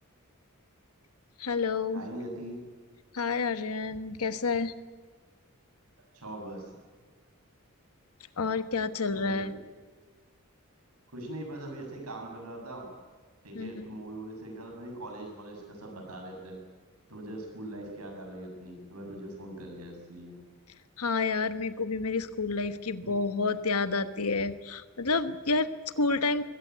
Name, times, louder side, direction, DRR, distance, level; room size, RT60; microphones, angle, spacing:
voice 1, 1.4-2.0 3.1-4.7 8.4-9.6 13.5-13.8 21.0-26.4, left 4 dB, 80° left, 12 dB, 1.3 m, -29 dB
voice 2, 1.9-2.6 6.1-6.8 9.1-9.5 11.1-12.9 13.4-16.6 17.1-20.4, right 1 dB, 85° right, 2 dB, 7.5 m, -41 dB
22.5 x 17.0 x 9.5 m, 1.4 s
head